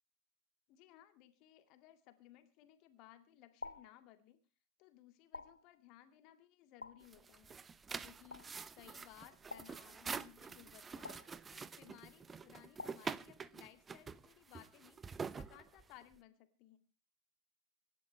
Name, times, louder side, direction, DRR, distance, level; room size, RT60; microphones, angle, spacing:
voice 1, 0.7-4.4 4.8-7.6 8.0-11.2 11.5-15.0 15.3-16.8, left 13 dB, 40° left, 9 dB, 2.3 m, -61 dB
sound 1, 3.6-4.0 5.3-5.7 6.8-7.2 8.3-8.6 9.5-9.9 11.0-11.4 12.8-13.2, left 3 dB, 80° left, 0.8 m, -50 dB
sound 2, 7.0-16.2, right 5 dB, 15° right, 0.9 m, -47 dB
26.0 x 11.5 x 3.4 m, 0.32 s
figure-of-eight pair, 90°, 0 cm